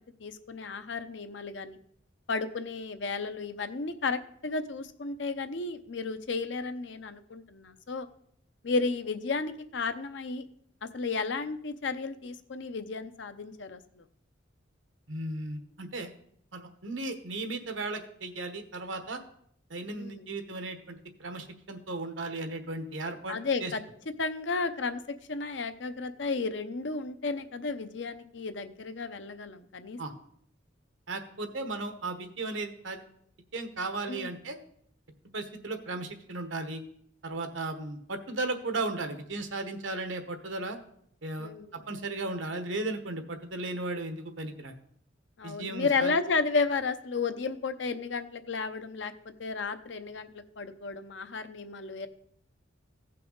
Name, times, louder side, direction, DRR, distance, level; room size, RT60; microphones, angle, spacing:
voice 1, 0.2-1.8 2.3-8.1 8.6-10.4 10.8-14.0 19.9-20.2 23.3-23.8 24.2-25.0 25.3-30.0 34.1-34.3 41.4-41.7 45.4-52.1, left 4 dB, 70° left, 9 dB, 0.7 m, -33 dB
voice 2, 15.1-16.1 16.5-19.2 19.7-23.7 30.0-30.1 31.1-33.0 33.5-34.6 35.3-36.8 37.2-40.8 41.2-41.5 41.9-44.7 45.4-46.1, right 2 dB, 85° right, 7 dB, 1.2 m, -35 dB
16.0 x 5.7 x 3.9 m, 0.67 s
head